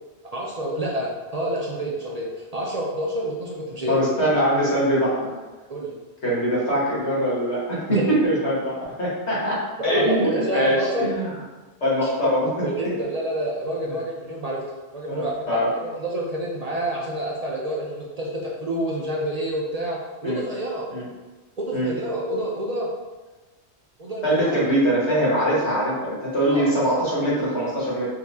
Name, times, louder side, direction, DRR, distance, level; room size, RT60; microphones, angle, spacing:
voice 1, 0.3-4.0 5.7-5.9 7.9-8.0 9.8-11.1 12.0-12.1 12.6-14.6 14.9-20.9 21.6-22.9 24.0-24.6 26.4-26.7, right 1 dB, 50° right, -3 dB, 0.5 m, -28 dB
voice 2, 3.9-5.3 6.2-11.4 11.8-12.7 15.1-15.7 20.2-20.4 20.9-21.0 21.7-21.9 24.2-28.1, equal, 90° left, -7 dB, 1.8 m, -22 dB
4.8 x 2.7 x 3.4 m, 1.2 s
omnidirectional pair, 1.1 m